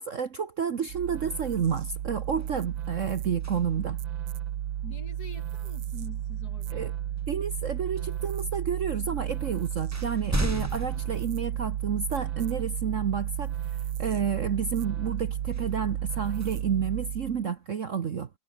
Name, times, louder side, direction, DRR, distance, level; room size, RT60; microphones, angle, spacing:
voice 1, 0.0-4.0 6.7-6.9 7.3-13.6 14.0-18.3, right 7 dB, 45° right, 1.2 m, -30 dB
sound 1, 0.9-17.4, right 11 dB, 85° right, 1.8 m, -33 dB
sound 2, 2.0-4.0 6.2-6.4 7.2-7.9 8.8-8.9 9.3-12.2 12.7-12.8 15.4-17.6, right 1 dB, 10° right, 2.2 m, -37 dB
voice 2, 4.8-6.9, left 3 dB, 50° left, 4.7 m, -46 dB
omnidirectional pair, 2.1 m